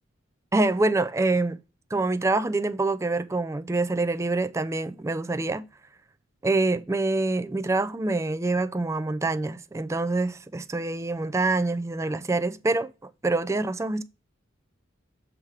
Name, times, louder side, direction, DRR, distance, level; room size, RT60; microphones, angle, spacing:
voice 1, 0.5-1.6 1.9-5.7 6.4-14.0, right 2 dB, 15° right, 0.3 m, -26 dB
7.3 x 3.3 x 4.5 m
head